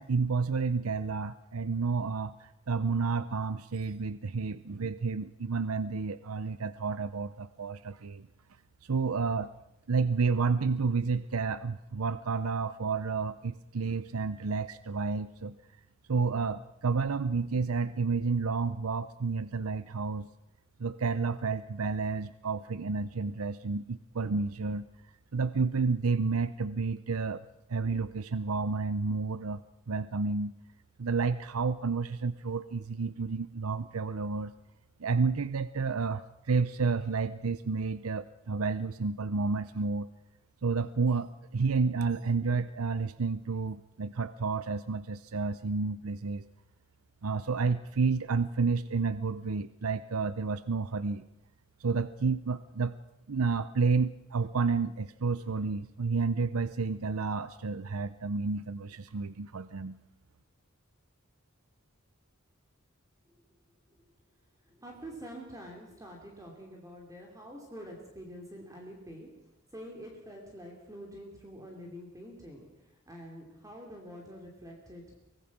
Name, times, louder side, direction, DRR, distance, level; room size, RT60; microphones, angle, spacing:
voice 1, 0.0-8.3 8.8-9.5 9.9-15.6 16.1-20.3 20.8-24.9 25.3-27.4 27.7-30.5 31.0-34.5 35.0-40.1 40.6-46.4 47.2-51.2 51.8-53.0 53.3-60.0, right 4 dB, 85° right, 14 dB, 0.7 m, -30 dB
voice 2, 64.7-75.2, equal, 15° right, 0 dB, 3.0 m, -47 dB
24.5 x 18.0 x 6.0 m, 0.87 s
head